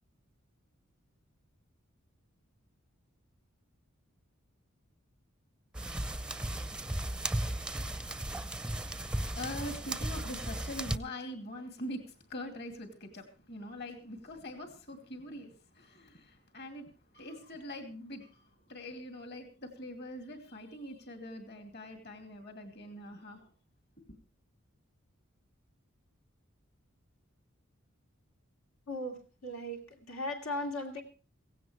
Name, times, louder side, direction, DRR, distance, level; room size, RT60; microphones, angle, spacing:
sound 1, 5.7-11.0, right 1 dB, 5° right, 0.6 m, -35 dB
voice 1, 9.2-23.5 24.1-24.2, left 1 dB, 50° left, 5 dB, 2.7 m, -43 dB
voice 2, 28.9-29.2 29.4-29.8 30.1-31.0, left 1 dB, 85° left, 2 dB, 2.6 m, -36 dB
16.5 x 16.5 x 3.3 m, 0.34 s
head